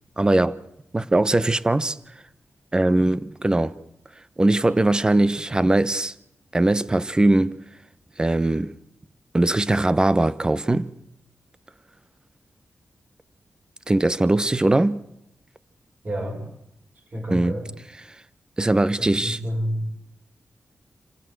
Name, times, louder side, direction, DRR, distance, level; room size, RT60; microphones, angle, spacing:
voice 1, 0.2-0.6 0.9-2.0 2.7-3.8 4.4-6.1 6.5-7.6 8.2-8.7 9.3-10.9 13.9-15.0 17.3-17.5 18.6-19.4, right 2 dB, 20° right, 0.9 m, -20 dB
voice 2, 16.0-16.4 16.9-17.7 19.0-20.0, equal, 40° right, 5.0 m, -29 dB
27.5 x 16.0 x 7.9 m
wide cardioid pair, 100°, 4 cm